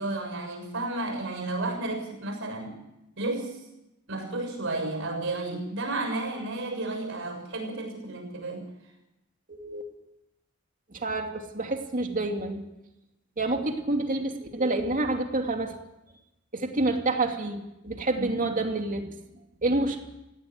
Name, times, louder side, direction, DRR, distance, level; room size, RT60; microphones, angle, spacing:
voice 1, 0.0-2.8 3.2-3.6 4.1-8.7 18.1-18.3, right 2 dB, 65° right, 4 dB, 7.0 m, -32 dB
voice 2, 9.5-9.9 10.9-12.6 13.4-15.7 16.5-19.1 19.6-20.0, right 2 dB, 40° right, 4 dB, 2.7 m, -28 dB
18.5 x 16.0 x 9.7 m, 0.91 s
head